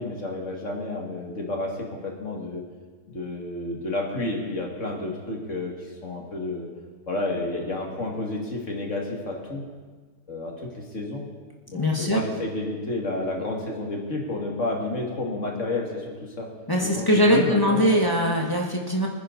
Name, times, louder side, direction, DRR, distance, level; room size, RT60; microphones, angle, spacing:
voice 1, 0.0-2.6 3.1-6.7 7.1-9.6 10.3-11.2 11.7-16.5 16.8-17.0 17.3-18.0, left 2 dB, 55° left, -1 dB, 2.7 m, -30 dB
voice 2, 11.7-12.2 16.7-19.1, equal, 15° left, 0 dB, 1.4 m, -21 dB
24.0 x 10.0 x 4.1 m, 1.5 s
omnidirectional pair, 1.5 m